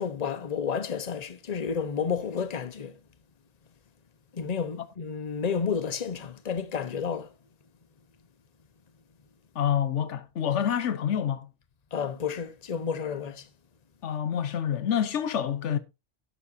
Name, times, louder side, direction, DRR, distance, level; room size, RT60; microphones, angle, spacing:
voice 1, 0.0-2.9 4.3-7.3 11.9-13.5, left 6 dB, 35° left, 1.0 m, -31 dB
voice 2, 9.5-11.5 14.0-15.8, left 9 dB, 80° left, 1.1 m, -27 dB
12.0 x 11.0 x 2.7 m
omnidirectional pair, 1.2 m